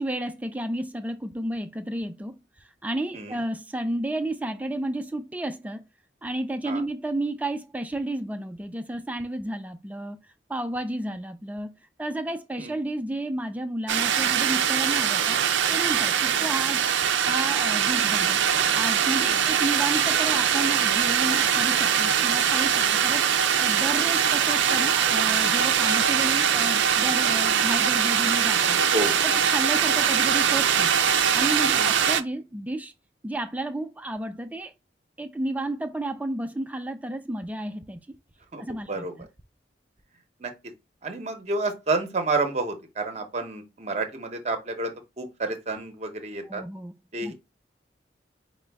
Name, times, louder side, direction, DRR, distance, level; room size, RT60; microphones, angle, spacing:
voice 1, 0.0-2.4 2.8-5.8 6.2-10.2 10.5-11.7 12.0-15.4 15.7-18.4 18.7-28.8 29.2-30.9 31.3-32.9 33.2-34.7 35.2-38.1 38.6-39.3 46.4-47.3, right 1 dB, 10° right, 0.3 m, -32 dB
sound 1, 13.9-32.2, right 8 dB, 75° right, 0.4 m, -22 dB
voice 2, 31.7-32.0 38.5-38.6 38.9-39.1 40.4-40.5 41.0-46.6 47.1-47.3, right 3 dB, 35° right, 0.8 m, -30 dB
5.0 x 2.2 x 3.4 m
head